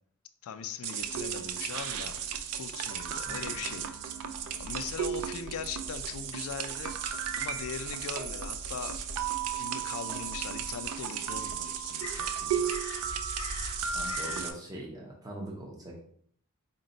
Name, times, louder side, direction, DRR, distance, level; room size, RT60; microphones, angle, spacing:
voice 1, 0.4-2.2 2.5-3.9 4.6-12.7, left 7 dB, 70° left, 10 dB, 0.3 m, -41 dB
sound 1, 0.8-14.5, right 8 dB, 70° right, 0.3 m, -35 dB
Crow, 1.0-14.5, left 2 dB, 90° left, 0.7 m, -46 dB
Bass guitar, 3.2-12.9, right 4 dB, 50° right, 1.0 m, -58 dB
voice 2, 13.9-16.0, right 1 dB, 15° right, -2 dB, 0.6 m, -41 dB
3.9 x 2.2 x 3.8 m, 0.63 s
head